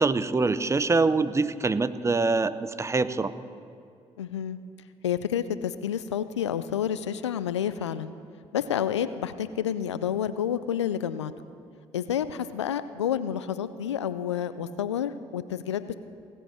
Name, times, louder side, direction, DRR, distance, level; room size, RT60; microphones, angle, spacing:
voice 1, 0.0-3.3, right 3 dB, 20° right, 14 dB, 0.6 m, -24 dB
voice 2, 4.2-4.6 5.0-8.1 8.5-11.3 11.9-15.9, left 9 dB, 90° left, 14 dB, 0.4 m, -29 dB
17.5 x 7.8 x 6.4 m, 2.4 s
hypercardioid pair, 50°, 14 cm